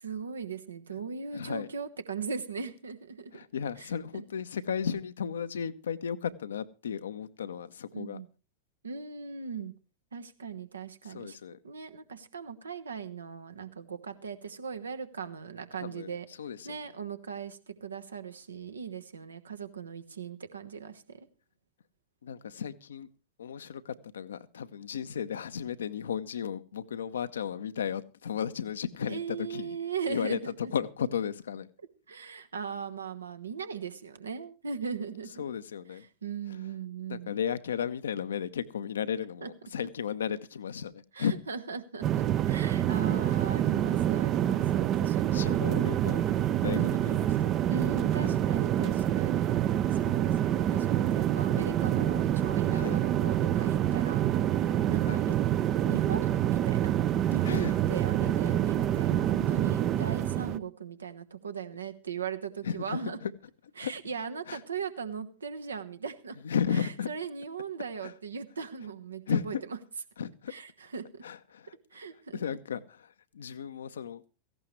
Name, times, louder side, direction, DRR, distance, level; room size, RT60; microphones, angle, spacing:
voice 1, 0.0-3.3 3.8-4.2 7.9-8.3 8.8-9.7 10.1-11.4 11.6-16.3 16.6-21.3 29.1-30.7 32.1-35.4 36.0-37.3 39.4-39.5 41.1-45.6 46.7-47.3 47.7-54.3 54.9-55.4 55.8-56.9 57.3-63.2 63.8-66.4 66.7-69.6 70.5-71.2 71.9-72.4, right 6 dB, 75° right, 9 dB, 1.1 m, -39 dB
voice 2, 1.3-1.7 3.3-8.2 11.1-11.6 15.8-16.1 16.4-16.8 22.2-23.1 23.4-29.8 30.1-30.4 30.7-31.7 35.4-36.0 37.1-41.4 45.3-47.3 48.1-48.4 52.7-53.0 55.0-55.2 57.4-57.8 62.6-63.3 63.8-63.9 64.5-64.6 66.4-67.1 68.0-68.1 69.3-69.6 70.2-70.5 71.2-71.7 72.3-74.3, left 7 dB, 65° left, 13 dB, 0.8 m, -34 dB
sound 1, 42.0-60.6, right 11 dB, 35° right, 0.6 m, -27 dB
17.0 x 15.5 x 3.2 m, 0.34 s
figure-of-eight pair, 90°, 0 cm